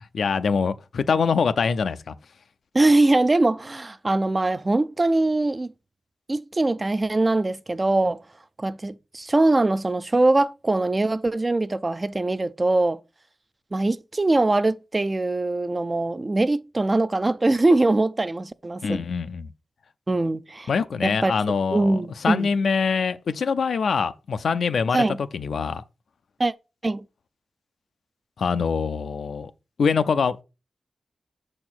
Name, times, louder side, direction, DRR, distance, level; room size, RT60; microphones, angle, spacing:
voice 1, 0.1-2.2 18.8-19.5 20.7-25.0 25.3-25.8 28.4-29.5 29.8-30.4, left 5 dB, 80° left, 0.4 m, -24 dB
voice 2, 2.7-5.7 6.3-8.2 8.6-13.0 13.7-19.0 20.1-20.7 21.0-21.3 21.7-22.5 24.9-25.2 26.4-26.5 26.8-27.0, right 2 dB, 30° right, 0.4 m, -22 dB
6.6 x 4.3 x 4.3 m
wide cardioid pair, 95°, 0 cm